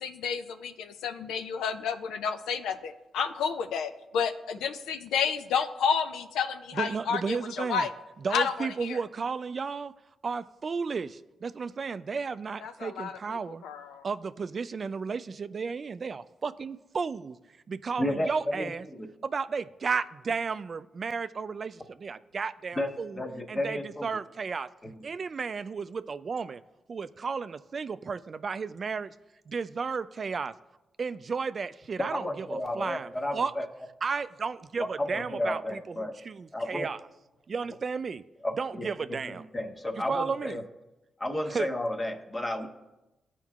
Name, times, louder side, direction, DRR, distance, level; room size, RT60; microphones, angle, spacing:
voice 1, 0.0-7.9 8.3-9.0 12.6-13.2 13.6-14.0, left 6 dB, 85° left, 0.4 m, -30 dB
voice 2, 6.7-7.9 8.2-9.9 10.2-13.6 14.0-17.4 17.7-18.9 19.2-23.2 23.5-24.7 25.0-26.6 26.9-29.1 29.5-30.5 31.0-33.5 34.0-37.0 37.5-38.2 38.6-39.5 40.1-40.6 41.5-41.7, right 5 dB, 50° right, 0.3 m, -33 dB
voice 3, 18.0-19.1 22.8-24.1 24.8-24.9 32.0-33.7 34.8-36.2 36.5-36.9 38.4-38.9 39.5-40.6 41.2-42.7, left 1 dB, 25° left, 1.2 m, -32 dB
13.0 x 4.5 x 2.4 m
supercardioid pair, 50°, 0 cm